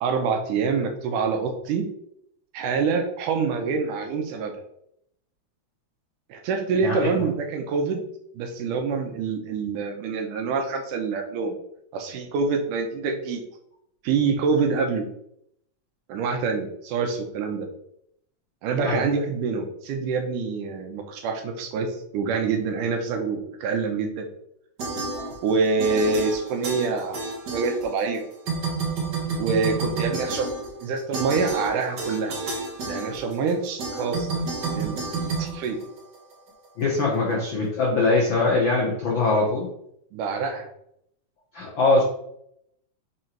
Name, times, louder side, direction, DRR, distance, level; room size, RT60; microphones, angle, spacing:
voice 1, 0.0-1.9 2.5-4.5 6.3-8.0 8.4-11.6 11.9-13.4 14.0-15.1 16.1-17.7 18.6-21.9 22.1-24.3 25.4-27.2 27.5-28.2 29.4-30.5 30.8-32.3 32.8-34.3 34.7-35.0 35.4-35.8 40.1-40.7, right 5 dB, 80° right, 4 dB, 2.2 m, -26 dB
voice 2, 6.8-7.2 18.8-19.0 25.2-25.3 36.8-39.7 41.5-42.0, left 3 dB, 75° left, -3 dB, 1.1 m, -22 dB
sound 1, 24.8-25.5 25.8-28.2 28.4-36.3, right 3 dB, 55° right, 1.2 m, -30 dB
5.5 x 3.9 x 4.4 m, 0.74 s
omnidirectional pair, 3.8 m